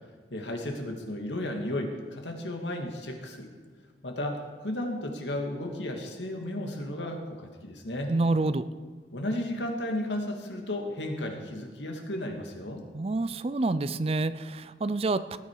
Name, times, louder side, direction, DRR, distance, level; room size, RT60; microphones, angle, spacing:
voice 1, 0.3-3.5 4.0-8.1 9.1-12.8, left 1 dB, 85° left, 3 dB, 2.2 m, -34 dB
voice 2, 8.1-8.7 12.9-15.4, right 2 dB, 35° right, 14 dB, 0.4 m, -27 dB
18.5 x 10.0 x 4.8 m, 1.5 s
head